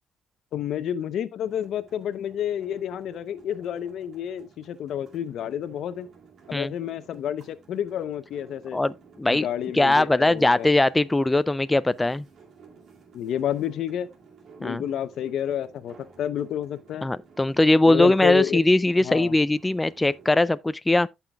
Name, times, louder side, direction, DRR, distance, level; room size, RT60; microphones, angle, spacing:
voice 1, 0.5-6.1 6.5-8.8 9.3-10.7 13.1-14.1 14.6-17.1 17.8-18.6 19.0-19.3, left 10 dB, 75° left, 0.7 m, -30 dB
sound 1, 1.4-20.5, right 5 dB, 60° right, 2.3 m, -53 dB
voice 2, 8.7-9.5 9.7-12.2 14.6-14.8 17.0-21.1, left 2 dB, 15° left, 0.3 m, -21 dB
15.0 x 5.7 x 2.3 m
cardioid pair, 90°, 0 cm